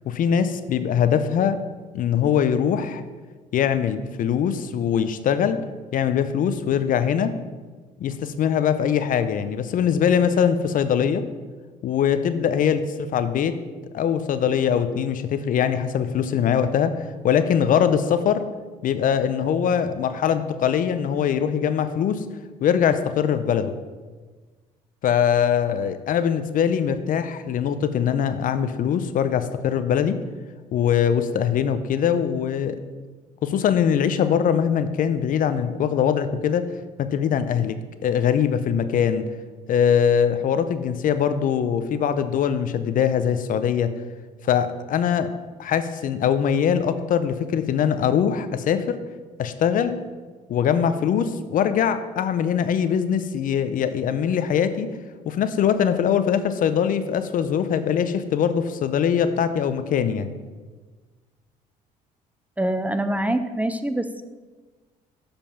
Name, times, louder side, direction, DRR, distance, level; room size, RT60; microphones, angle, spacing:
voice 1, 0.1-1.6 1.9-3.0 3.5-5.6 5.9-7.3 8.0-11.2 11.8-12.8 13.1-13.5 13.9-16.9 17.2-18.5 18.8-22.2 22.6-23.7 25.0-30.2 30.7-32.8 33.4-36.7 37.0-37.8 38.0-39.3 39.7-43.9 44.4-45.3 45.6-49.0 49.4-50.0 50.5-54.9 55.3-60.3, left 8 dB, 60° left, 11 dB, 0.6 m, -22 dB
voice 2, 62.6-64.2, right 1 dB, 10° right, 9 dB, 0.6 m, -25 dB
7.2 x 5.2 x 5.8 m, 1.3 s
supercardioid pair, 75°, 16 cm